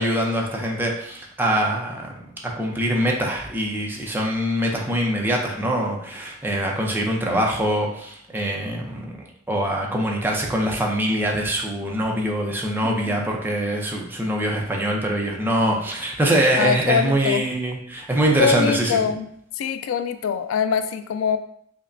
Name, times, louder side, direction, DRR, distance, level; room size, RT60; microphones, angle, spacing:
voice 1, 0.0-19.0, right 1 dB, 10° right, -1 dB, 0.5 m, -23 dB
voice 2, 12.8-13.3 16.6-17.5 18.4-19.3 19.6-21.4, left 6 dB, 80° left, 11 dB, 0.3 m, -23 dB
5.0 x 2.1 x 2.6 m, 0.67 s
head